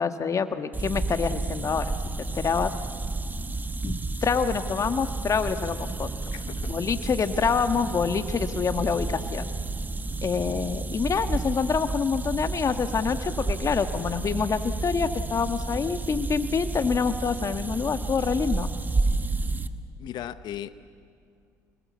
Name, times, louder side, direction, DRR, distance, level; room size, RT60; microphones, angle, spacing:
voice 1, 0.0-1.9 2.3-2.7 3.8-6.1 6.7-9.4 10.2-18.7, left 6 dB, 40° left, 9 dB, 1.4 m, -26 dB
sound 1, 0.7-19.7, right 3 dB, 20° right, 1.2 m, -31 dB
voice 2, 6.3-6.8 19.3-19.4 20.0-20.7, left 11 dB, 60° left, 13 dB, 0.8 m, -37 dB
27.0 x 20.0 x 8.4 m, 2.3 s
hypercardioid pair, 65°, 8 cm